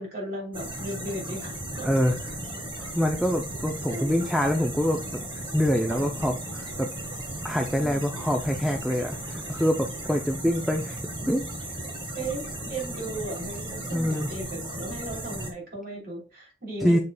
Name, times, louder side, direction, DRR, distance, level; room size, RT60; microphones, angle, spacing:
voice 1, 0.0-1.9 3.8-4.2 5.9-6.1 7.8-8.1 9.5-9.6 12.1-17.0, right 1 dB, 50° right, -2 dB, 3.2 m, -36 dB
sound 1, 0.5-15.5, right 1 dB, 25° right, 1.6 m, -36 dB
voice 2, 1.8-2.1 2.8-5.2 5.5-6.9 7.4-11.0 11.3-11.5 13.9-14.3 16.8-17.0, equal, ahead, 4 dB, 0.5 m, -25 dB
6.8 x 6.7 x 2.3 m, 0.34 s
head